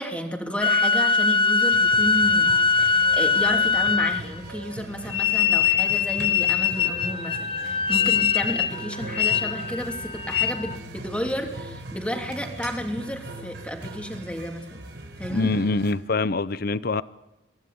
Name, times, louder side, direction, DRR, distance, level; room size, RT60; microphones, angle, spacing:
voice 1, 0.0-14.8 15.2-15.5, equal, 5° left, 2.9 m, -32 dB
sound 1, 0.6-4.4 5.1-10.8, left 5 dB, 30° left, 1.2 m, -22 dB
sound 2, 1.7-15.9, right 2 dB, 75° right, 4.4 m, -40 dB
voice 2, 15.3-17.0, left 3 dB, 55° left, 0.7 m, -24 dB
24.5 x 16.5 x 9.5 m
head